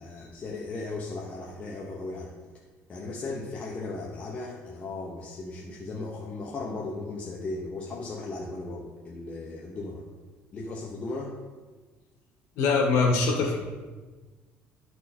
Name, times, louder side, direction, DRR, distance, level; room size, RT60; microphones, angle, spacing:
voice 1, 0.0-2.3 2.9-10.1 10.5-11.3, left 3 dB, 25° left, -2 dB, 0.8 m, -36 dB
voice 2, 12.6-13.6, left 4 dB, 80° left, 0 dB, 1.4 m, -23 dB
11.5 x 4.4 x 4.3 m, 1.3 s
cardioid pair, 170°, 5 cm